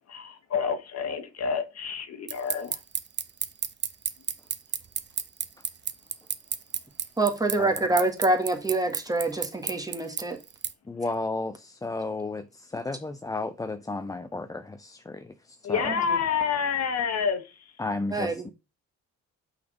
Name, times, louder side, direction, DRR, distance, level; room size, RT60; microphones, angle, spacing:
voice 1, 0.1-2.8 15.6-17.7, left 6 dB, 55° left, 1.2 m, -28 dB
sound 1, 2.3-10.7, right 7 dB, 35° right, 0.7 m, -30 dB
voice 2, 7.2-10.4 15.9-16.0 18.1-18.5, right 2 dB, 10° right, 1.7 m, -26 dB
voice 3, 10.9-15.8 17.8-18.5, left 2 dB, 10° left, 0.4 m, -33 dB
5.7 x 4.1 x 5.2 m
cardioid pair, 90°, 30 cm